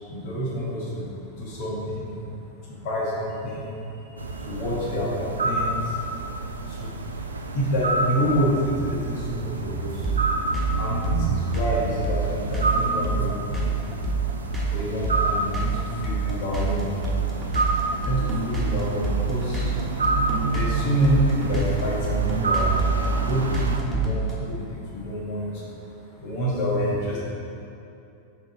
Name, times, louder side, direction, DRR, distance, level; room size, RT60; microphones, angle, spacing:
voice 1, 0.1-1.1 1.4-2.2 2.6-6.0 6.6-7.0 7.5-10.1 10.7-13.8 14.7-16.9 17.9-20.0 20.5-25.7 26.2-27.2, equal, 45° left, -5 dB, 1.4 m, -28 dB
sound 1, 4.2-23.8, right 3 dB, 75° right, 0.4 m, -29 dB
sound 2, 10.0-24.3, right 4 dB, 5° right, 1.4 m, -26 dB
6.5 x 4.7 x 4.1 m, 2.7 s
figure-of-eight pair, 90°, 0 cm